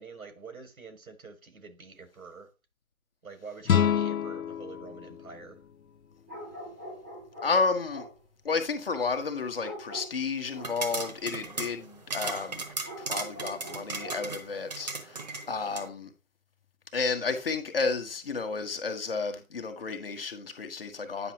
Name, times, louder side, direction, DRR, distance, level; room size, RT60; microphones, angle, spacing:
voice 1, 0.0-2.5 3.2-5.6, right 4 dB, 75° right, 1.6 m, -46 dB
sound 1, 3.6-6.7, left 9 dB, 75° left, 0.7 m, -29 dB
sound 2, 6.3-7.6 7.9-8.2 9.6-10.8 12.8-14.4, equal, 5° right, 0.9 m, -43 dB
voice 2, 7.4-8.1 8.4-16.1 16.9-21.3, left 4 dB, 40° left, 1.2 m, -32 dB
sound 3, 10.5-15.9, right 3 dB, 30° right, 1.0 m, -37 dB
9.0 x 5.6 x 2.8 m
figure-of-eight pair, 155°, 42 cm